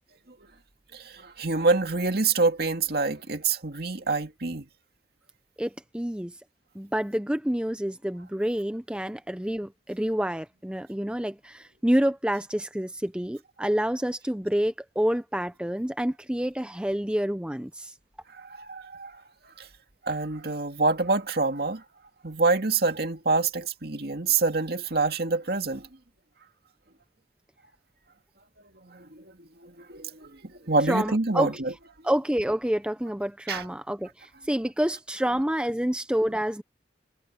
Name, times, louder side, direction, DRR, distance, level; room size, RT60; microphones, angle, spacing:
voice 1, 0.9-4.6 18.3-19.1 19.6-19.7 20.0-21.8 22.2-25.9 28.8-31.7 33.5-33.6, right 3 dB, 55° right, 2.2 m, -26 dB
voice 2, 5.6-6.4 6.7-17.9 30.9-31.5 32.0-36.6, equal, 5° right, 0.7 m, -28 dB
head